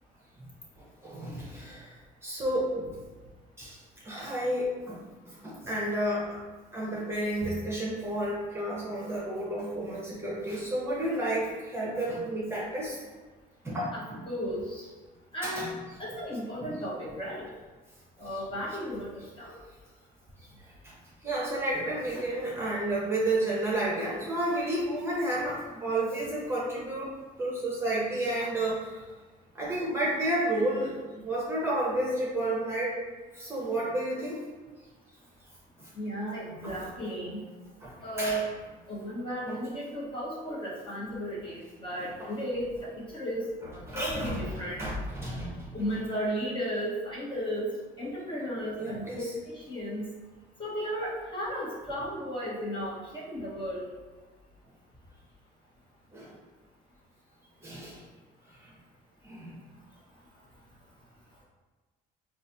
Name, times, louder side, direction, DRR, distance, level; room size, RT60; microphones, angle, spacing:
voice 1, 1.0-1.9 2.2-3.0 3.6-3.8 4.0-5.0 5.3-6.4 6.7-13.0 13.6-14.2 15.4-15.7 16.6-16.7 18.3-18.4 20.8-20.9 21.2-27.1 27.4-29.0 29.5-33.0 33.3-34.4 35.8-35.9 36.6-36.8 37.8-38.4 39.5-39.6 42.0-42.3 43.9-45.7 48.8-49.3 56.1-56.3 57.6-58.0 58.6-58.7 59.2-59.5, right 1 dB, 15° right, -6 dB, 0.9 m, -31 dB
voice 2, 13.9-14.8 15.3-15.7 16.0-17.5 18.2-19.1 19.4-19.5 36.0-37.4 38.0-38.4 38.9-44.8 45.7-47.7 48.0-49.3 49.7-50.0 50.6-53.9, equal, 30° left, -7 dB, 1.3 m, -34 dB
3.9 x 2.4 x 2.7 m, 1.3 s
cardioid pair, 110°, 17 cm